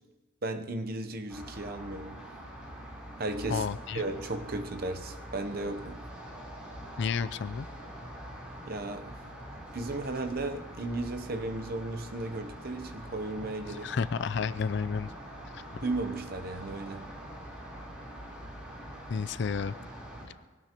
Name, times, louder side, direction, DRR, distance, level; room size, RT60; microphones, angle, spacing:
voice 1, 0.4-2.3 3.2-6.0 8.6-9.2 9.7-13.9 15.8-17.1, right 2 dB, 45° right, 0.7 m, -35 dB
sound 1, 1.3-20.3, equal, 5° right, 3.8 m, -44 dB
voice 2, 3.5-4.0 7.0-7.7 13.7-15.1 19.1-19.8, left 5 dB, 55° left, 0.4 m, -31 dB
23.0 x 17.5 x 3.0 m
head